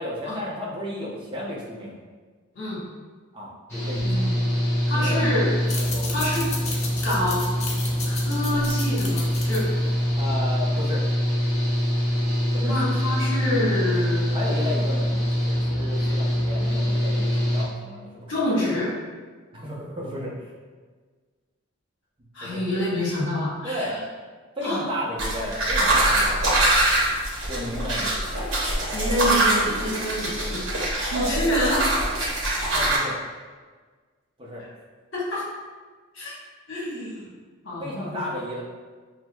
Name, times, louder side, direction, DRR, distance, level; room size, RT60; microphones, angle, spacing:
voice 1, 0.0-2.0 3.3-4.1 4.9-6.3 10.2-11.0 12.5-12.7 14.3-18.8 19.5-20.5 22.4-22.6 23.6-24.0 24.6-26.7 27.5-28.3 32.7-33.2 34.4-34.6 37.8-38.6, left 1 dB, 25° right, -5 dB, 0.6 m, -33 dB
Engine / Mechanical fan, 3.7-17.6, equal, 10° left, 1.5 m, -24 dB
voice 2, 4.1-4.4 4.9-5.5 6.1-6.5 7.0-7.4 8.1-9.7 12.6-14.3 18.3-18.9 22.3-24.0 24.6-24.8 28.9-30.7 31.1-31.8 35.1-35.4 36.1-36.3 36.7-37.2 37.6-38.2, left 1 dB, 60° left, -7 dB, 1.3 m, -27 dB
sound 1, 5.6-10.7, left 3 dB, 30° left, 0.4 m, -35 dB
sound 2, 25.2-33.0, right 1 dB, 60° right, 0.9 m, -23 dB
6.0 x 2.1 x 2.2 m, 1.5 s
head